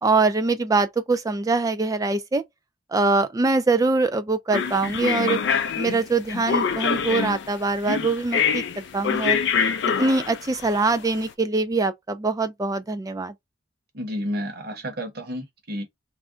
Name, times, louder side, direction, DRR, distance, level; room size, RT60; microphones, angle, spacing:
voice 1, 0.0-2.4 2.9-5.4 5.8-9.4 10.0-13.3, right 3 dB, 20° right, 0.3 m, -23 dB
sound 1, 4.5-11.2, left 6 dB, 60° left, 0.4 m, -25 dB
voice 2, 13.9-15.8, equal, 55° right, 0.9 m, -31 dB
2.4 x 2.1 x 3.7 m
head